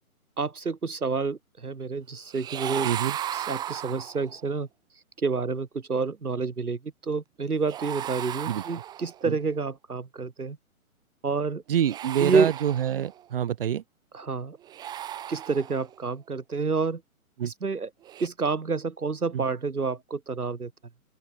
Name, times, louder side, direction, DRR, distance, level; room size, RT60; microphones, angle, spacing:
voice 1, 0.4-2.9 3.3-4.7 5.2-10.6 11.2-11.6 12.2-12.5 14.1-14.6 15.3-17.0 17.4-17.9 18.2-20.7, right 4 dB, 80° right, 1.5 m, -28 dB
sound 1, 2.3-4.5 7.7-9.3 11.7-13.3 14.6-16.0 18.0-18.3, right 11 dB, 10° right, 1.1 m, -36 dB
voice 2, 2.8-3.2 8.5-8.6 9.3-9.4 11.7-13.8 17.4-17.5 19.3-19.4, right 9 dB, 40° right, 1.0 m, -26 dB
open air
figure-of-eight pair, 130°, 44 cm